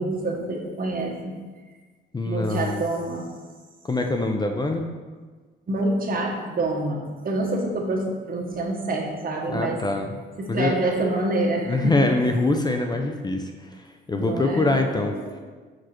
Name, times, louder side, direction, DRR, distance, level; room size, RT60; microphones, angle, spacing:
voice 1, 0.0-1.3 2.2-3.3 5.7-9.8 10.4-12.0 14.1-15.3, right 2 dB, 45° right, 0 dB, 1.4 m, -27 dB
voice 2, 2.1-2.8 3.8-4.9 9.5-10.2 10.5-10.8 11.6-15.5, left 2 dB, 20° left, 4 dB, 0.5 m, -24 dB
6.1 x 4.8 x 4.4 m, 1.4 s
cardioid pair, 90°, 20 cm